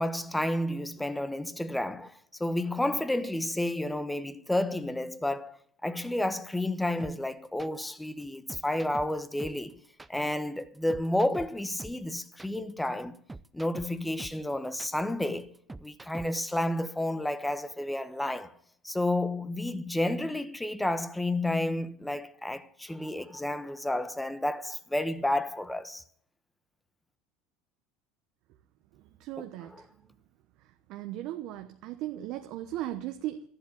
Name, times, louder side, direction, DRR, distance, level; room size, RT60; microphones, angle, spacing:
voice 1, 0.0-2.1 2.4-9.8 10.1-13.2 13.5-15.5 15.8-18.5 18.8-26.0 29.4-29.9, left 1 dB, 5° left, 1.2 m, -31 dB
sound 1, 7.0-16.5, right 2 dB, 10° right, 0.7 m, -46 dB
voice 2, 29.2-29.8 30.9-33.4, right 13 dB, 60° right, 1.0 m, -37 dB
13.0 x 11.0 x 8.7 m
hypercardioid pair, 85°, 0 cm